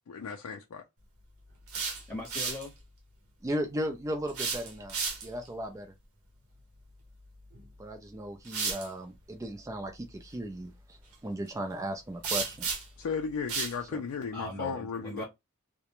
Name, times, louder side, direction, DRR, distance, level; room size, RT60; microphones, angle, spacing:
voice 1, 0.1-0.8 13.0-15.2, left 5 dB, 80° left, 0.4 m, -35 dB
sound 1, 1.5-2.7 4.3-5.5 7.5-7.7 8.4-8.9 12.2-13.0 13.5-13.8, right 5 dB, 70° right, 0.8 m, -33 dB
voice 2, 2.1-2.7 14.3-15.2, left 1 dB, 5° left, 0.8 m, -39 dB
voice 3, 3.4-5.0 5.2-5.9 7.8-11.0 11.2-12.7 13.9-14.0, equal, 15° right, 0.3 m, -36 dB
2.4 x 2.1 x 2.9 m
head